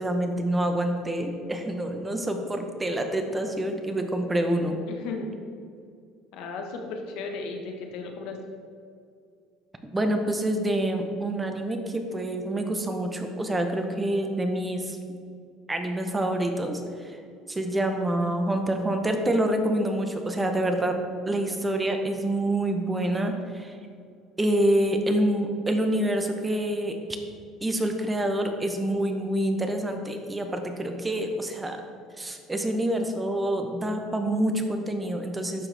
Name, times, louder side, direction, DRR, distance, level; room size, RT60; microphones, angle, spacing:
voice 1, 0.0-4.8 9.9-15.0 15.7-17.2 17.5-21.0 21.3-23.8 24.4-27.0 27.6-31.8 32.2-35.7, right 1 dB, 15° right, 5 dB, 0.9 m, -27 dB
voice 2, 4.9-5.3 6.3-8.4, left 4 dB, 75° left, 3 dB, 1.2 m, -35 dB
12.0 x 4.6 x 3.4 m, 2.3 s
cardioid pair, 115°, 0 cm